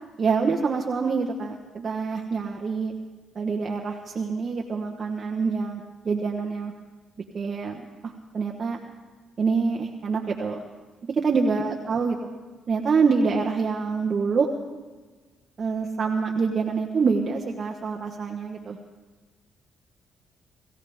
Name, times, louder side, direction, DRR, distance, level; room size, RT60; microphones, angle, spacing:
voice 1, 0.2-2.9 3.3-6.7 7.3-8.8 9.4-10.6 11.2-12.2 12.7-14.5 15.6-18.8, right 5 dB, 45° right, 1 dB, 1.2 m, -26 dB
23.0 x 15.0 x 3.6 m, 1.3 s
cardioid pair, 90°, 0 cm